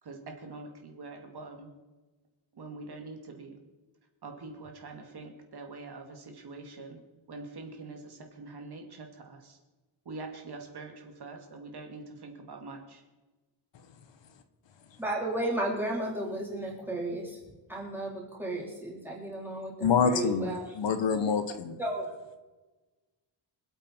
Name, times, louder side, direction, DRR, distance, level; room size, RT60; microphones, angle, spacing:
voice 1, 0.0-1.7 2.5-3.6 4.2-7.0 7.3-9.6 10.1-13.0, right 3 dB, 55° right, 3 dB, 2.4 m, -44 dB
voice 2, 15.0-17.4 17.7-20.7 21.8-22.1, right 1 dB, 5° right, -4 dB, 4.0 m, -33 dB
voice 3, 19.8-21.7, left 6 dB, 65° left, 9 dB, 1.3 m, -26 dB
26.0 x 8.7 x 4.5 m, 1.2 s
wide cardioid pair, 180°, 46 cm